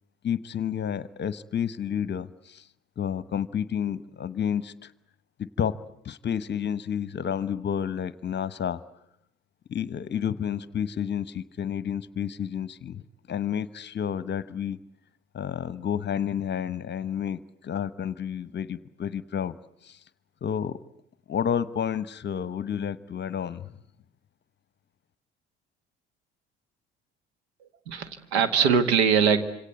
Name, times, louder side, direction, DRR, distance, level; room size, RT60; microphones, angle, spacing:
voice 1, 0.2-2.7 3.0-4.9 5.4-8.8 9.7-14.8 15.3-19.6 19.8-20.0 20.4-20.8 21.3-23.7, left 8 dB, 35° left, 17 dB, 1.0 m, -30 dB
voice 2, 27.6-29.4, right 6 dB, 75° right, 11 dB, 1.7 m, -22 dB
27.0 x 26.5 x 8.2 m, 0.74 s
figure-of-eight pair, 55°, 32 cm